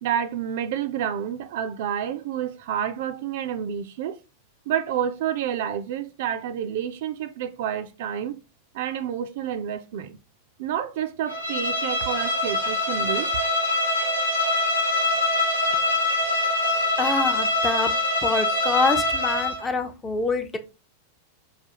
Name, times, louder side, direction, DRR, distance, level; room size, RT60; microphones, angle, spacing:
voice 1, 0.0-4.2 4.7-8.4 8.7-10.2 10.6-13.3, right 9 dB, 50° right, 0.4 m, -29 dB
Bowed string instrument, 11.3-19.7, left 2 dB, 80° left, 1.1 m, -24 dB
voice 2, 16.6-17.9 18.2-20.6, left 3 dB, 15° left, 0.5 m, -26 dB
4.8 x 2.3 x 2.7 m
figure-of-eight pair, 90°, 0 cm